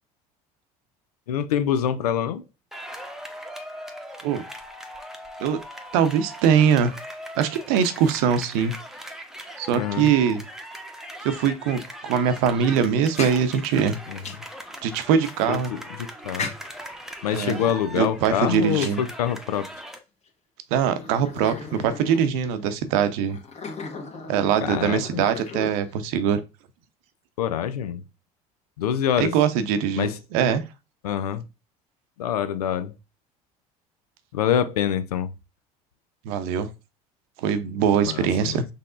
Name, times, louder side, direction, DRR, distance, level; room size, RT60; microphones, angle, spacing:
voice 1, 1.3-2.4 9.7-10.1 14.1-14.2 15.5-15.8 16.2-16.5 17.2-19.7 24.6-25.2 27.4-28.0 28.8-29.4 30.0-30.2 31.0-31.4 32.2-32.9 34.3-35.3 38.0-38.6, left 9 dB, 85° left, 0.5 m, -25 dB
sound 1, 2.7-20.0, equal, ahead, 0.9 m, -40 dB
voice 2, 5.9-6.9 7.4-8.7 9.6-10.4 11.2-14.0 14.8-15.7 17.3-17.6 17.9-19.0 20.7-23.4 24.3-26.4 29.2-30.6 36.2-36.7 37.4-38.7, right 8 dB, 70° right, 0.7 m, -22 dB
sound 2, 12.9-14.6 15.2-15.3 16.4-16.9 17.5-19.6 20.3-20.4 20.9-22.6 23.3-26.0, left 4 dB, 35° left, 1.3 m, -37 dB
5.5 x 3.4 x 2.5 m
hypercardioid pair, 70°, 19 cm